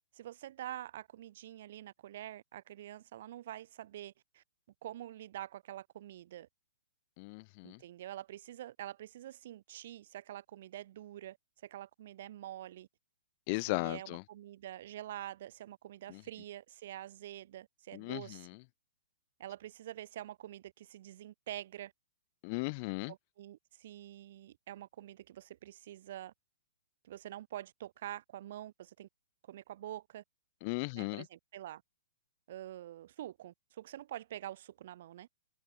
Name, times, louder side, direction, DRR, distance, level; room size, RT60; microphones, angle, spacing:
voice 1, 0.1-4.4 4.8-6.5 7.6-11.4 11.6-12.9 13.7-18.5 19.4-21.9 23.1-26.3 27.0-29.1 29.4-30.2 30.9-31.8 32.5-35.3, right 13 dB, 55° right, 1.6 m, -46 dB
voice 2, 7.2-7.8 13.5-14.2 16.1-16.2 17.9-18.4 22.4-23.1 30.6-31.2, left 30 dB, 40° left, 0.5 m, -36 dB
hypercardioid pair, 135°, 0 cm